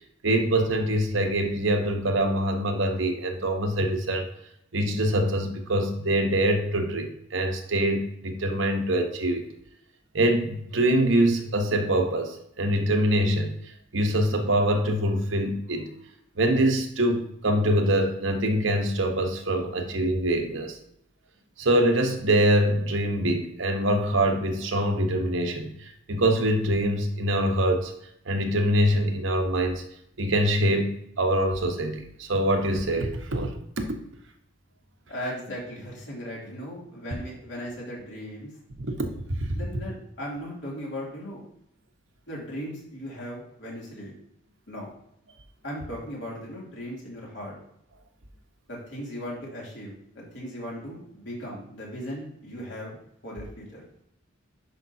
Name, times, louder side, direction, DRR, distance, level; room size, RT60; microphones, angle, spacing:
voice 1, 0.2-4.2 4.7-9.5 10.1-13.6 13.9-15.9 16.4-20.8 21.6-25.7 26.1-27.9 28.3-29.8 30.2-33.5 33.8-33.9 38.8-39.1, right 1 dB, 75° right, 4 dB, 1.1 m, -24 dB
voice 2, 35.1-38.5 39.5-41.4 42.3-44.1 44.7-44.9 45.6-47.6 48.7-53.0 53.2-53.8, equal, 65° left, -4 dB, 2.8 m, -37 dB
10.5 x 5.1 x 2.8 m, 0.74 s
head